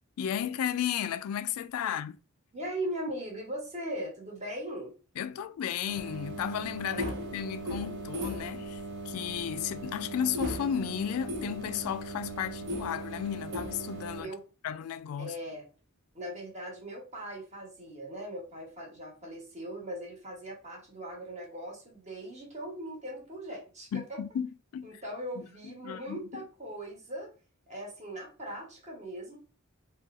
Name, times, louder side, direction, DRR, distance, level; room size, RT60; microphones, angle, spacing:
voice 1, 0.2-2.2 5.2-14.3 14.6-15.4 23.9-25.0 25.4-26.4, left 9 dB, 85° left, 0.3 m, -34 dB
voice 2, 2.5-4.9 6.9-7.5 14.2-14.4 15.2-15.7 16.1-24.2 24.8-27.3 27.7-29.4, right 1 dB, 35° right, 1.1 m, -40 dB
sound 1, 5.9-14.2, right 1 dB, 55° right, 0.7 m, -38 dB
2.7 x 2.3 x 3.6 m
head